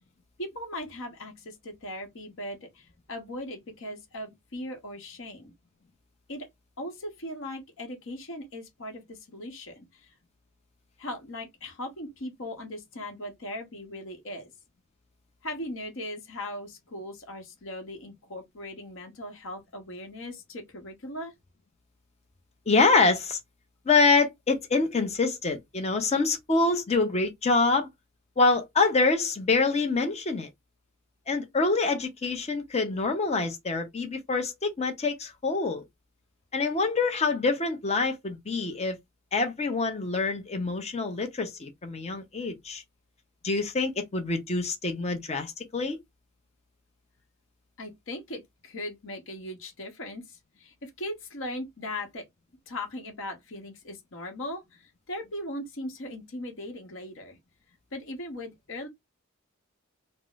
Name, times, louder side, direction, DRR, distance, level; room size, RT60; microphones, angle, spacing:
voice 1, 0.4-5.5 6.3-6.5 6.8-10.1 11.0-14.5 15.4-21.3 47.8-52.3 52.7-57.4 57.9-58.9, left 1 dB, 65° left, 0.9 m, -39 dB
voice 2, 22.7-23.4 23.9-27.9 28.4-30.5 31.3-35.8 36.5-39.0 39.3-42.8 43.4-46.0, left 3 dB, 30° left, 0.6 m, -26 dB
3.5 x 2.0 x 2.3 m
head